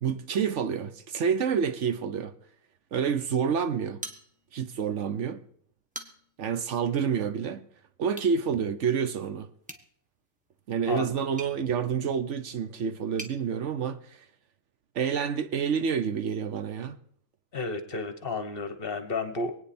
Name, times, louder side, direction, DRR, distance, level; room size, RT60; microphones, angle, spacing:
voice 1, 0.0-2.3 2.9-4.0 4.5-5.4 6.4-7.7 8.0-9.5 10.7-14.2 14.9-17.0, right 7 dB, 65° right, 1.1 m, -28 dB
sound 1, 4.0-4.8 5.1-5.2 5.7-6.5 8.1-8.4 9.6-13.4, right 1 dB, 5° right, 1.2 m, -45 dB
voice 2, 17.5-19.5, left 3 dB, 45° left, 1.2 m, -32 dB
24.5 x 9.3 x 4.3 m
omnidirectional pair, 1.4 m